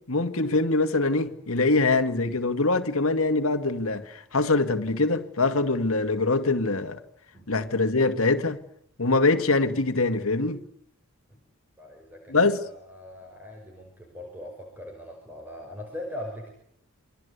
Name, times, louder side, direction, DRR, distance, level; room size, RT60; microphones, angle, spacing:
voice 1, 0.0-7.0 7.5-8.6 9.0-10.6 12.3-12.6, left 3 dB, 70° left, 2.0 m, -23 dB
voice 2, 11.8-12.4 12.7-16.5, left 1 dB, 10° right, 5.5 m, -40 dB
28.5 x 23.0 x 8.2 m
head